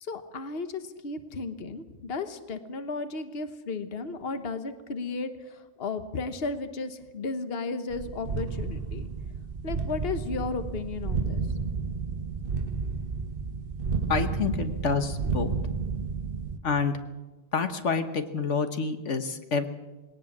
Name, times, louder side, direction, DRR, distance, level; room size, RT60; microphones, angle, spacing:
voice 1, 0.0-9.1 9.6-11.4, left 3 dB, 55° left, 9 dB, 1.4 m, -34 dB
sound 1, 7.9-16.6, right 4 dB, 50° right, 1.2 m, -31 dB
voice 2, 14.1-15.5 16.6-17.0 17.5-19.7, left 5 dB, 75° left, 8 dB, 1.6 m, -28 dB
20.0 x 18.5 x 7.3 m, 1.1 s
omnidirectional pair, 1.2 m